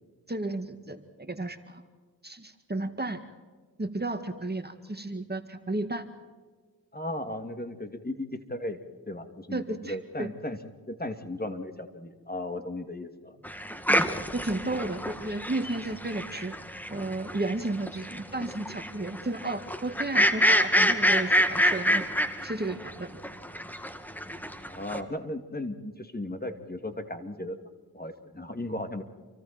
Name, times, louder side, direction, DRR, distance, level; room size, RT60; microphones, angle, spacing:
voice 1, 0.3-1.8 2.2-3.2 3.8-6.1 9.5-10.3 13.9-14.0 14.3-16.6 16.9-22.1 22.4-23.2, right 2 dB, 25° right, 7 dB, 2.0 m, -33 dB
voice 2, 6.9-8.8 9.1-10.6 10.9-13.4 24.7-27.6 27.9-29.0, left 1 dB, 25° left, 7 dB, 2.6 m, -36 dB
sound 1, 13.4-22.9 23.2-25.0, equal, 5° left, 2.1 m, -26 dB
29.0 x 24.5 x 4.5 m, 1.4 s
cardioid pair, 50°, 40 cm